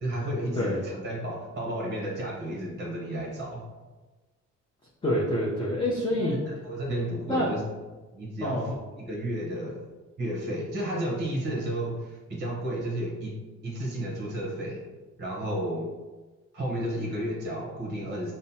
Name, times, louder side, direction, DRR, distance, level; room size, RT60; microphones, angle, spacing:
voice 1, 0.0-3.7 6.2-7.6 8.1-9.8 10.2-14.8 15.2-15.9 16.5-18.3, right 1 dB, 35° right, -3 dB, 0.9 m, -32 dB
voice 2, 5.0-6.4 7.3-7.5 8.4-8.7, left 1 dB, 15° left, -5 dB, 0.7 m, -26 dB
5.3 x 2.1 x 2.7 m, 1.2 s
cardioid pair, 90°, 30 cm